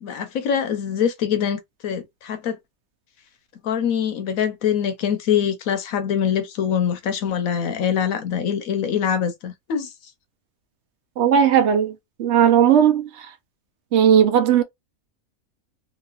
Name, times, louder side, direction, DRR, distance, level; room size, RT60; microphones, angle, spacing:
voice 1, 0.0-2.6 3.6-9.9, left 8 dB, 70° left, 1.1 m, -24 dB
voice 2, 11.2-13.3 13.9-14.6, right 9 dB, 65° right, 0.7 m, -17 dB
3.0 x 2.9 x 2.3 m
omnidirectional pair, 1.6 m